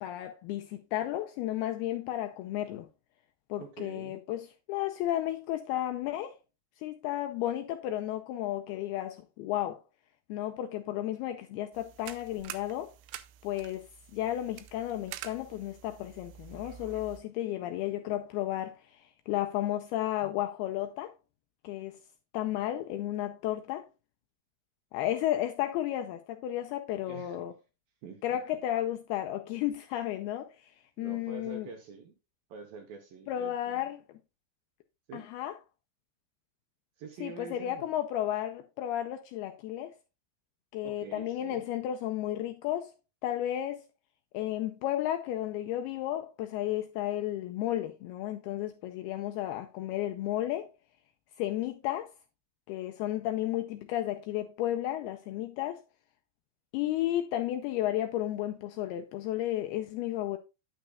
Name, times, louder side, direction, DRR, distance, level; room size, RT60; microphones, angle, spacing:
voice 1, 0.0-2.9 3.5-6.4 6.8-9.8 10.3-12.9 13.4-21.1 21.6-22.0 22.3-23.9 24.9-27.5 28.2-31.7 33.3-34.0 35.1-35.6 37.2-39.9 40.7-42.9 43.2-43.8 44.3-50.7 51.4-52.1 52.7-55.8 56.7-60.4, left 13 dB, 85° left, 2.3 m, -33 dB
voice 2, 3.6-4.2 26.9-27.4 28.0-28.2 31.0-32.1 32.5-33.9 35.1-35.3 37.0-37.9 40.8-41.7, right 5 dB, 70° right, 2.3 m, -46 dB
sound 1, 11.7-17.2, right 12 dB, 85° right, 2.9 m, -47 dB
9.1 x 9.1 x 2.3 m
omnidirectional pair, 5.1 m